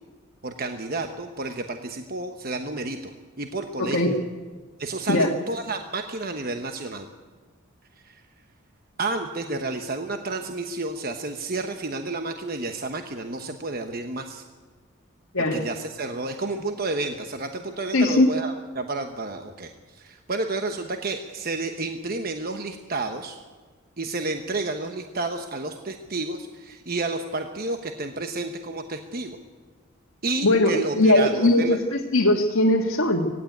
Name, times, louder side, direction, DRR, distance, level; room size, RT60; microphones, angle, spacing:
voice 1, 0.4-3.1 3.4-4.1 4.8-7.1 8.0-8.2 9.0-14.4 15.5-23.4 24.0-29.4 30.2-31.8, right 3 dB, 45° right, 6 dB, 1.1 m, -31 dB
voice 2, 3.8-4.1 5.1-5.3 15.3-15.7 17.9-18.3 30.4-33.3, left 1 dB, 75° left, -1 dB, 1.6 m, -20 dB
19.0 x 16.0 x 9.3 m, 1.4 s
head